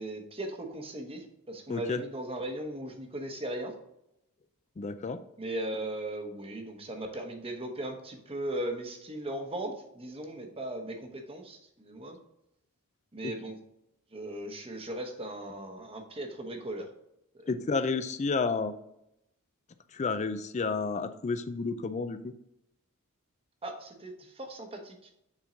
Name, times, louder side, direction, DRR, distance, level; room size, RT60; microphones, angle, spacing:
voice 1, 0.0-3.7 5.4-12.2 13.1-13.6 14.1-16.9 17.3-17.4 23.6-25.1, right 1 dB, 25° right, 4 dB, 0.9 m, -38 dB
voice 2, 1.7-2.0 4.8-5.2 13.2-13.3 17.5-18.7 19.9-22.3, left 4 dB, 30° left, 10 dB, 0.4 m, -31 dB
7.2 x 3.6 x 3.9 m, 0.81 s
head